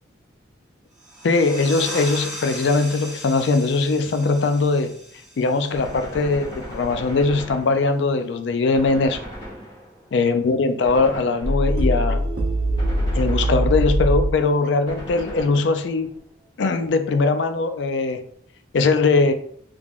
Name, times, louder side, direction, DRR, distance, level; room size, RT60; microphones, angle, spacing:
sound 1, 1.0-6.3, equal, ahead, 1.0 m, -37 dB
voice 1, 1.2-4.9 5.4-9.2 10.1-12.2 13.1-16.1 16.6-18.2 18.7-19.3, left 3 dB, 70° left, 9 dB, 0.4 m, -20 dB
Gunshot gunfire, 5.7-8.2 8.7-10.1 10.8-11.9 12.8-14.2 14.9-16.1, equal, 25° left, 1.3 m, -37 dB
sound 2, 11.4-14.4, right 1 dB, 60° right, 0.7 m, -21 dB
3.4 x 3.2 x 2.4 m, 0.62 s
head